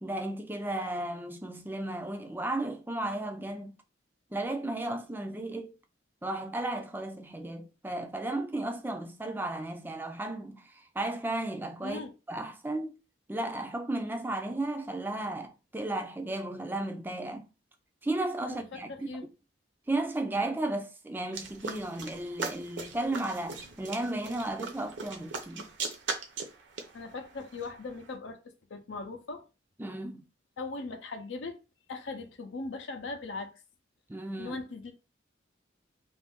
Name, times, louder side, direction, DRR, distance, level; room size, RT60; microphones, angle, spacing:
voice 1, 0.0-3.7 4.3-5.7 6.2-12.0 12.3-13.0 13.3-17.5 18.0-19.1 19.9-25.7 29.8-30.2 34.1-34.6, right 2 dB, 10° right, 0.3 m, -34 dB
voice 2, 18.5-19.3 26.9-28.4 28.7-29.4 30.6-31.6 31.9-33.6 34.4-34.9, left 3 dB, 80° left, 0.6 m, -39 dB
sound 1, 21.3-28.1, right 4 dB, 75° right, 0.6 m, -39 dB
2.6 x 2.5 x 3.5 m
head